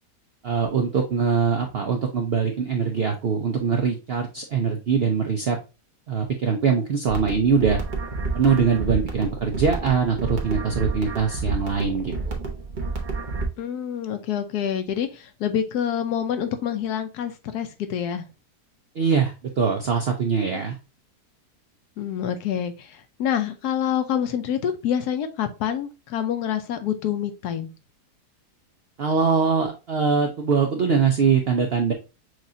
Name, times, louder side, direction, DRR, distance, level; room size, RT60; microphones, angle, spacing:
voice 1, 0.4-5.6 6.1-7.8 8.3-12.4 19.0-20.8 29.0-31.9, right 6 dB, 65° right, 3 dB, 0.6 m, -22 dB
sound 1, 7.1-13.5, right 3 dB, 40° right, 0.8 m, -30 dB
voice 2, 13.6-18.3 20.5-20.6 22.0-27.7, left 9 dB, 75° left, 8 dB, 1.2 m, -27 dB
6.2 x 2.5 x 2.7 m, 0.29 s
omnidirectional pair, 1.8 m